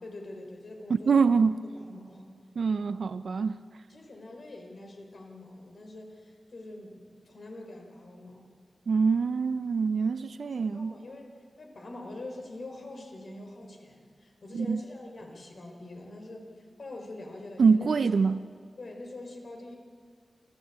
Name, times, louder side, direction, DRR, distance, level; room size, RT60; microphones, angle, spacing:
voice 1, 0.0-1.2 1.8-2.2 3.9-8.5 10.4-11.3 11.6-16.5 16.8-17.9 18.3-18.4 18.8-19.8, left 2 dB, 65° left, 2 dB, 4.3 m, -44 dB
voice 2, 0.9-1.6 2.6-3.6 8.9-10.9 14.5-14.8 17.6-18.4, right 5 dB, 85° right, 12 dB, 0.6 m, -25 dB
28.5 x 12.5 x 8.4 m, 2.1 s
wide cardioid pair, 90°, 0 cm